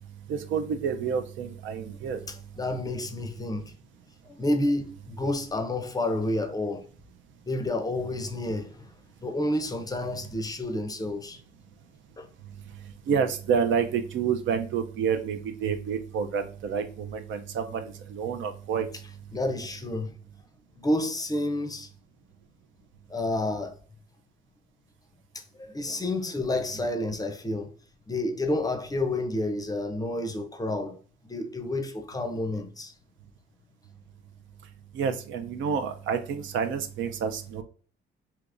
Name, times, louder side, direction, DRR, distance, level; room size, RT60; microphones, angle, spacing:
voice 1, 0.3-2.2 13.1-18.9 34.9-37.6, right 7 dB, 75° right, 0.5 m, -29 dB
voice 2, 2.6-3.7 4.3-6.9 7.5-8.9 9.2-11.4 12.2-12.3 19.3-20.1 20.8-21.9 23.1-23.7 25.3-27.7 28.1-31.0 31.2-32.9, left 1 dB, 20° left, 0.5 m, -29 dB
3.4 x 2.8 x 2.5 m
cardioid pair, 90°, 20 cm